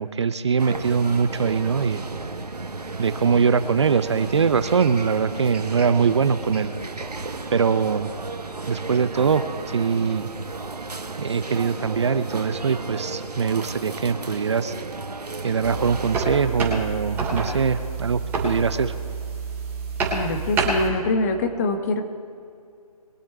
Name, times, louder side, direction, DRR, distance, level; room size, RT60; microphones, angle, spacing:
voice 1, 0.0-2.0 3.0-6.7 7.5-8.1 8.7-10.3 11.2-14.7 15.4-18.9, right 6 dB, 45° right, 12 dB, 0.6 m, -22 dB
sound 1, 0.6-16.3, right 3 dB, 80° right, 1.5 m, -34 dB
sound 2, 15.6-20.9, right 4 dB, 10° right, 3.1 m, -28 dB
voice 2, 20.1-22.0, left 2 dB, 25° left, 6 dB, 1.2 m, -24 dB
23.0 x 8.8 x 4.6 m, 2.4 s
figure-of-eight pair, 150°, 20 cm